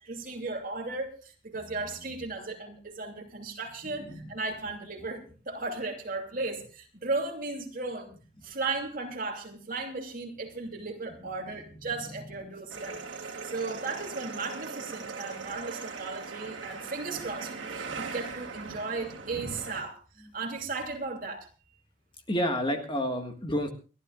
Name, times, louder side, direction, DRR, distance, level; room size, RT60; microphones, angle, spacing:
voice 1, 0.0-8.1 8.4-20.0 20.3-21.5, right 3 dB, 45° right, 2 dB, 2.9 m, -36 dB
voice 2, 3.8-4.3 11.2-11.6 12.3-13.0 13.4-13.5 22.3-23.7, equal, 25° left, 5 dB, 1.7 m, -32 dB
sound 1, 12.7-19.8, right 4 dB, 70° right, 2.7 m, -39 dB
29.5 x 12.5 x 2.5 m, 0.34 s
head